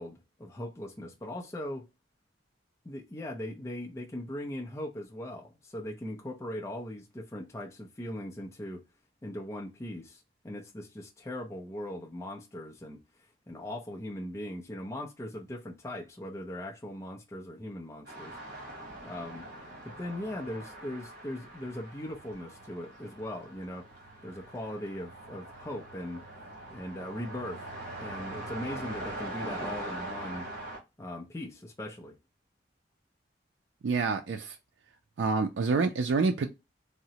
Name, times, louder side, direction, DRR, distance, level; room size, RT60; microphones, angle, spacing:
voice 1, 0.0-1.9 2.8-8.8 9.2-13.0 13.5-18.3 19.0-19.5 19.8-23.9 24.2-26.2 26.7-27.6 28.0-30.5 31.0-32.1, left 1 dB, 15° left, 0.5 m, -39 dB
sound 1, 18.0-30.8, right 1 dB, 50° right, 1.2 m, -42 dB
voice 2, 33.8-34.6 35.2-36.5, right 4 dB, 70° right, 0.4 m, -27 dB
3.7 x 2.1 x 2.8 m
head